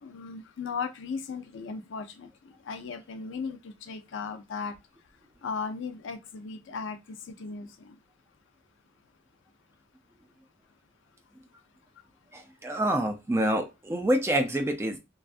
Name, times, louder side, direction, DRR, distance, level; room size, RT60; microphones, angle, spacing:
voice 1, 0.0-2.3 2.6-4.7 5.4-8.0, left 5 dB, 70° left, 0.4 m, -37 dB
voice 2, 12.3-15.0, right 1 dB, 15° right, 0.4 m, -27 dB
2.6 x 2.3 x 2.4 m
head